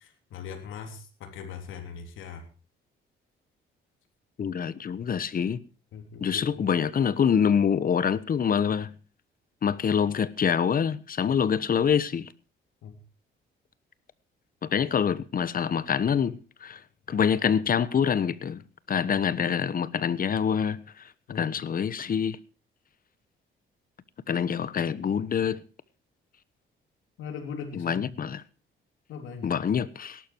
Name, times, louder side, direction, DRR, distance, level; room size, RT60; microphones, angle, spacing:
voice 1, 0.0-2.4 5.9-6.7 12.8-12.9 21.3-21.5 27.2-28.1 29.1-29.5, left 6 dB, 85° left, 3.4 m, -40 dB
voice 2, 4.4-5.6 6.2-8.9 9.6-12.3 14.6-16.8 17.1-18.6 18.9-21.1 21.3-22.4 24.3-25.6 27.7-28.4 29.4-30.2, left 7 dB, 45° left, 1.2 m, -26 dB
18.0 x 12.0 x 4.5 m
cardioid pair, 90°, 20 cm